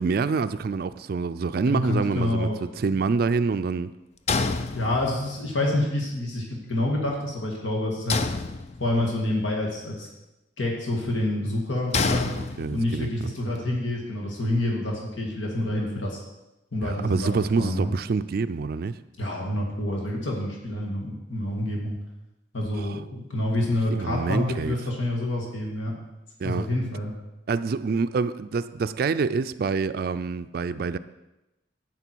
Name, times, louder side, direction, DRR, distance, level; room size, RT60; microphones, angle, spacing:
voice 1, 0.0-3.9 12.4-13.3 16.8-19.0 22.7-23.0 24.0-24.8 26.4-26.7 27.5-31.0, right 4 dB, 50° right, 0.3 m, -26 dB
voice 2, 1.7-2.5 4.7-8.2 8.8-10.1 10.6-12.3 12.7-16.2 16.7-17.3 17.6-17.9 19.2-22.0 22.5-25.9 26.4-27.1, left 1 dB, 80° left, 2.0 m, -27 dB
sound 1, 4.3-5.4 8.1-9.1 11.9-13.0, left 4 dB, 35° left, 0.5 m, -27 dB
11.0 x 8.7 x 4.6 m
head